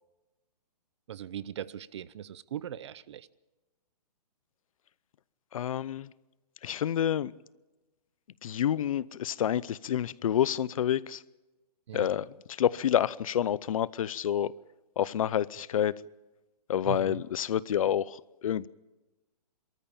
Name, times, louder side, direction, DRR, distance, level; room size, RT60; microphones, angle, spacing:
voice 1, 1.1-3.3 11.9-12.1 16.8-17.2, right 10 dB, 45° right, 0.6 m, -39 dB
voice 2, 5.5-6.1 6.6-7.3 8.4-11.2 11.9-14.5 15.0-16.0 16.7-18.7, left 10 dB, 55° left, 0.6 m, -28 dB
25.5 x 13.5 x 8.7 m
hypercardioid pair, 165°, 21 cm